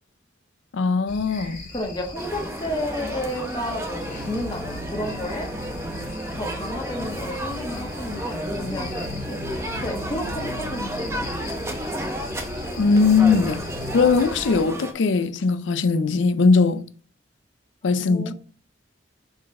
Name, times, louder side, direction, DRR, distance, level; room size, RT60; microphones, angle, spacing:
voice 1, 0.7-1.6 12.8-13.6 13.9-16.8 17.8-18.3, left 4 dB, 85° left, 0.5 m, -20 dB
sound 1, 1.1-14.6, left 2 dB, 45° left, 2.1 m, -39 dB
voice 2, 1.7-5.5 6.3-9.5 9.8-11.5 18.0-18.3, left 1 dB, 25° left, 1.2 m, -32 dB
sound 2, 2.1-14.9, equal, 15° right, 0.8 m, -32 dB
sound 3, 2.4-14.1, equal, 40° right, 1.5 m, -39 dB
5.9 x 4.4 x 3.7 m
head